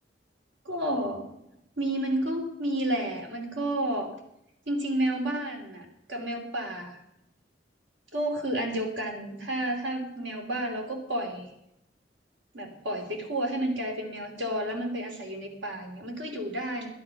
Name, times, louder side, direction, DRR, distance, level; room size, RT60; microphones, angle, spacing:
voice 1, 0.6-1.3 1.8-4.1 4.7-7.0 8.1-11.5 12.5-16.9, right 1 dB, 80° right, 2 dB, 2.9 m, -31 dB
11.5 x 10.5 x 5.9 m, 0.80 s
head